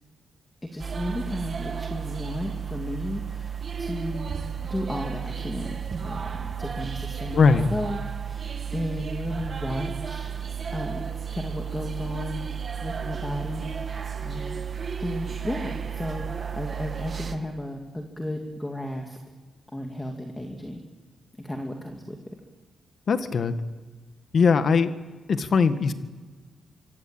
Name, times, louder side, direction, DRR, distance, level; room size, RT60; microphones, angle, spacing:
voice 1, 0.6-8.0 8.2-10.3 10.7-12.4 12.8-14.6 15.0-19.2 19.7-20.8 21.4-22.2, left 1 dB, 10° left, 3 dB, 2.4 m, -34 dB
sound 1, 0.8-17.4, right 7 dB, 35° right, 1.7 m, -33 dB
voice 2, 7.3-7.7 23.1-23.6 24.3-24.9 25.3-25.9, left 5 dB, 45° left, 10 dB, 1.6 m, -20 dB
26.0 x 24.5 x 8.9 m, 1.4 s
wide cardioid pair, 155°, 0 cm